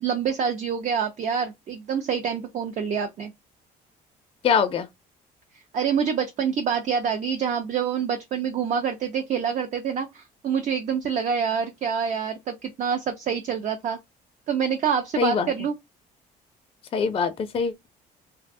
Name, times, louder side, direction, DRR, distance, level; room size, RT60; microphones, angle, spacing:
voice 1, 0.0-3.3 5.7-14.0 14.5-15.8, right 7 dB, 45° right, 0.4 m, -26 dB
voice 2, 4.4-4.9 15.2-15.5 16.9-17.9, left 6 dB, 35° left, 0.4 m, -23 dB
2.6 x 2.1 x 2.5 m
cardioid pair, 110°, 17 cm